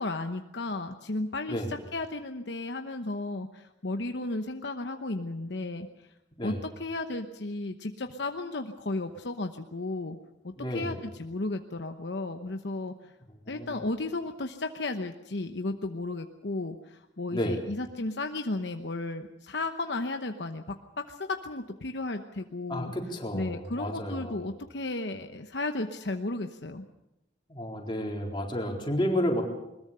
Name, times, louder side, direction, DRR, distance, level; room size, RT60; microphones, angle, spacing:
voice 1, 0.0-5.9 6.4-6.5 6.8-10.2 10.4-13.1 13.5-22.9 23.3-26.8, left 2 dB, 65° left, 6 dB, 1.0 m, -34 dB
voice 2, 10.6-11.0 13.5-13.8 17.3-17.6 22.7-24.4 27.5-29.4, equal, 25° left, 0 dB, 4.0 m, -31 dB
21.5 x 21.0 x 6.8 m, 0.92 s
head